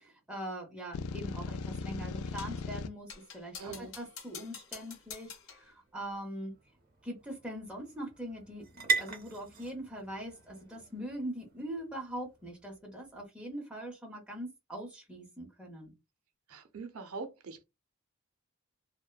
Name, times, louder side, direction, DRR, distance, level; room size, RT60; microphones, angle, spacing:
voice 1, 0.0-6.5 7.0-15.9, right 1 dB, 5° right, 0.7 m, -42 dB
sound 1, 0.9-2.9, left 4 dB, 90° left, 0.3 m, -38 dB
sound 2, 2.4-2.7 3.1-5.7, left 6 dB, 65° left, 0.9 m, -47 dB
voice 2, 3.6-3.9 16.5-17.6, right 4 dB, 85° right, 0.6 m, -42 dB
sound 3, 5.3-13.1, right 5 dB, 45° right, 0.7 m, -40 dB
2.7 x 2.1 x 2.3 m
head